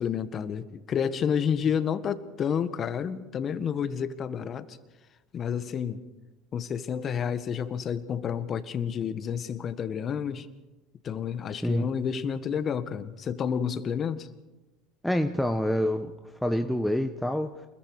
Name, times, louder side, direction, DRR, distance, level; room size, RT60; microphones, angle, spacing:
voice 1, 0.0-4.8 5.3-6.0 6.5-10.5 11.0-14.3, left 7 dB, 40° left, 12 dB, 1.6 m, -30 dB
voice 2, 15.0-17.7, equal, ahead, 5 dB, 1.2 m, -27 dB
28.5 x 21.5 x 5.0 m, 1.1 s
hypercardioid pair, 75°, 0 cm